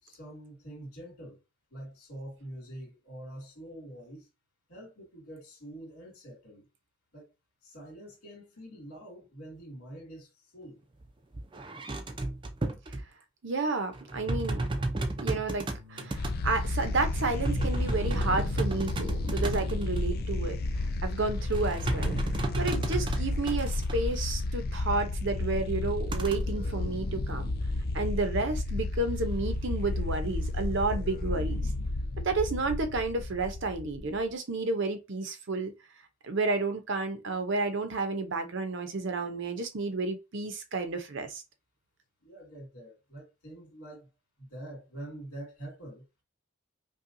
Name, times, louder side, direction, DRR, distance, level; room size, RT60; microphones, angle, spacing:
voice 1, 0.0-1.4 1.7-4.3 4.7-6.6 7.1-7.3 7.6-10.8 42.2-44.1 44.4-46.0, right 1 dB, 80° left, 2.3 m, -45 dB
sound 1, 11.0-11.1 11.3-13.1 13.9-16.3 17.1-20.0 21.5-24.0 26.1-26.4, right 2 dB, 20° right, 0.5 m, -33 dB
voice 2, 13.4-14.6 15.2-20.6 21.0-22.2 22.6-27.5 27.9-31.7 32.2-35.7 36.2-41.4, right 3 dB, 55° right, 0.7 m, -31 dB
sound 2, 15.0-24.9, equal, 80° right, 1.0 m, -51 dB
sound 3, 16.1-34.2, left 2 dB, 45° left, 0.4 m, -32 dB
5.4 x 2.3 x 2.6 m
head